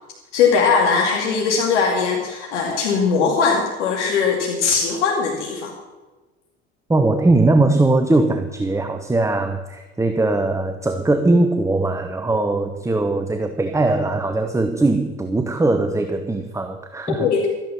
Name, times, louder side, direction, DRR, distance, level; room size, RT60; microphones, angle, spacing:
voice 1, 0.3-5.7 17.2-17.5, left 5 dB, 85° left, 0 dB, 2.4 m, -20 dB
voice 2, 6.9-17.3, right 2 dB, 10° right, 8 dB, 1.0 m, -20 dB
13.0 x 10.5 x 6.9 m, 1.2 s
hypercardioid pair, 85°, 35 cm